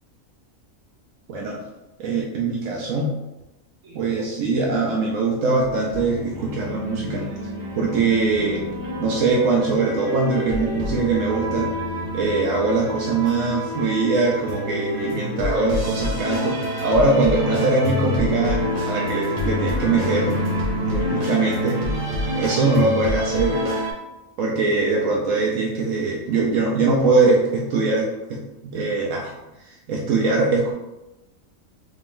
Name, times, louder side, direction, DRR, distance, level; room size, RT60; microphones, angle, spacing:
voice 1, 1.3-1.6 2.0-3.1 3.8-7.3 7.7-8.7 9.0-11.7 12.1-20.4 20.8-21.8 22.3-23.6 24.4-29.3 29.6-30.7, right 3 dB, 70° right, -2 dB, 0.9 m, -22 dB
sound 1, 5.6-23.9, equal, 40° right, 0.7 m, -27 dB
3.7 x 3.6 x 2.5 m, 1.0 s
omnidirectional pair, 1.4 m